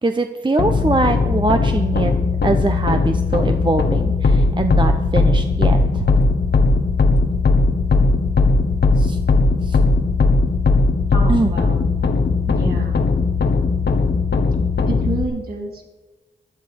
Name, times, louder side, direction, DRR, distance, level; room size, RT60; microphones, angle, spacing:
voice 1, 0.0-2.1 2.4-6.1 9.0-9.2 9.6-9.8 11.3-11.5, right 2 dB, 25° right, 6 dB, 0.9 m, -22 dB
sound 1, 0.6-15.2, left 3 dB, 65° left, 1.4 m, -18 dB
voice 2, 11.1-11.8 12.5-13.0 14.9-15.9, right 2 dB, 55° right, -2 dB, 4.0 m, -28 dB
15.0 x 11.0 x 5.4 m, 1.2 s
cardioid pair, 50°, 19 cm